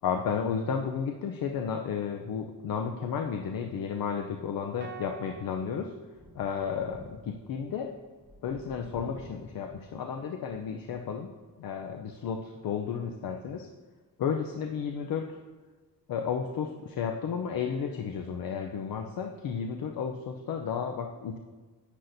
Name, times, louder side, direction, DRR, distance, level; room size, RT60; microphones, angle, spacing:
voice 1, 0.0-5.9 6.3-7.9 8.4-11.3 11.6-13.7 14.2-15.2 16.1-21.4, left 7 dB, 80° left, 3 dB, 0.6 m, -33 dB
sound 1, 4.8-7.1, right 7 dB, 35° right, 0.4 m, -48 dB
Thunder, 6.1-11.2 11.6-11.7 13.1-13.2, equal, 15° left, 1.3 m, -52 dB
10.0 x 8.0 x 2.6 m, 1.3 s
wide cardioid pair, 140°, 34 cm